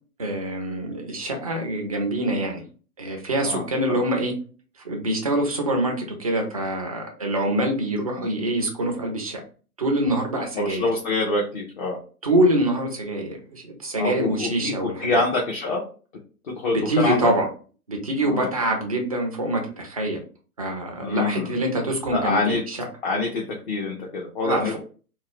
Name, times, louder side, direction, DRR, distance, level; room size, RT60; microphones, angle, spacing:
voice 1, 0.2-2.6 3.0-4.3 4.8-9.4 9.8-10.9 12.2-15.2 16.7-17.5 17.9-20.2 20.6-22.8 24.4-24.8, right 1 dB, 25° right, 2 dB, 0.3 m, -25 dB
voice 2, 3.4-4.0 8.2-8.3 10.5-12.0 14.0-15.8 16.4-17.3 18.3-18.5 21.0-21.5 22.1-22.6 23.0-24.8, left 3 dB, 35° left, -1 dB, 0.5 m, -26 dB
2.6 x 2.1 x 3.3 m, 0.39 s
figure-of-eight pair, 120°, 47 cm